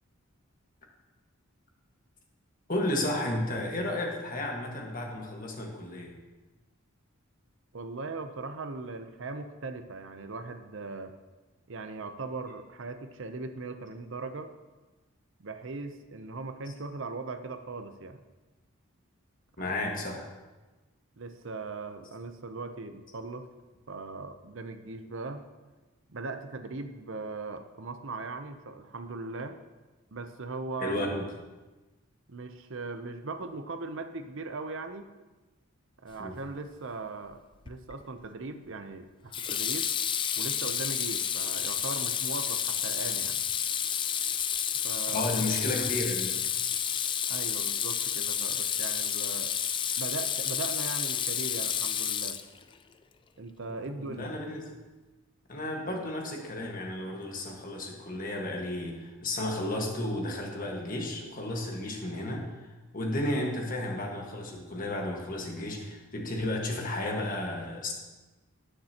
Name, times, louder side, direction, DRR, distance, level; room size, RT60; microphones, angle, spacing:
voice 1, 2.7-6.2 19.6-20.3 30.8-31.3 36.2-36.3 45.1-46.4 53.6-54.7 55.5-67.9, left 1 dB, 40° left, 0 dB, 1.6 m, -33 dB
voice 2, 7.7-11.1 11.7-14.5 15.4-18.2 19.6-19.8 21.2-23.5 23.9-25.4 26.1-29.6 30.1-31.1 32.3-35.1 36.0-37.4 37.7-39.9 40.4-43.4 44.8-45.3 47.3-49.5 50.0-52.4 53.4-54.3, right 3 dB, 60° right, 8 dB, 0.7 m, -39 dB
Water tap faucet / Sink (filling or washing), 37.7-38.0 39.3-52.7, left 8 dB, 20° left, 0.3 m, -30 dB
19.0 x 6.7 x 2.9 m, 1.2 s
head